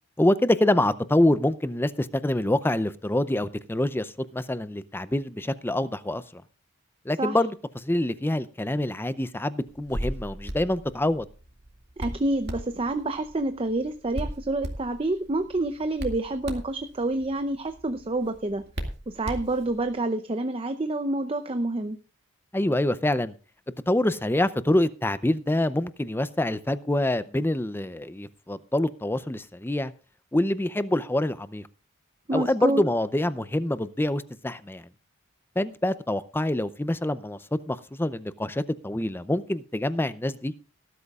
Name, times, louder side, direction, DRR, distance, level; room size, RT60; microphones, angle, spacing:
voice 1, 0.2-6.4 7.1-11.3 22.5-23.3 23.9-29.9 30.3-31.6 32.3-34.8 35.6-40.5, left 1 dB, 10° left, 0.5 m, -26 dB
Hands, 9.7-19.9, equal, 50° right, 2.2 m, -38 dB
voice 2, 12.0-18.6 19.1-22.0 32.3-32.8, right 2 dB, 25° right, 0.6 m, -28 dB
18.5 x 12.5 x 2.4 m
head